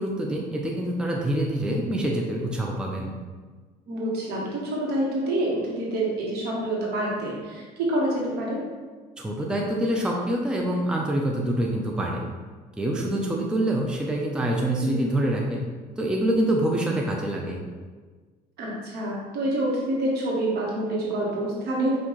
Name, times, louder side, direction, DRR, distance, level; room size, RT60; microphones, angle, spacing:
voice 1, 0.0-3.1 9.2-12.2 12.8-15.6 16.0-17.6, right 1 dB, 5° right, -1 dB, 0.5 m, -26 dB
voice 2, 3.9-8.6 14.8-15.0 18.6-22.0, right 1 dB, 75° right, -4 dB, 1.3 m, -27 dB
5.7 x 2.6 x 3.1 m, 1.4 s
cardioid pair, 110°, 17 cm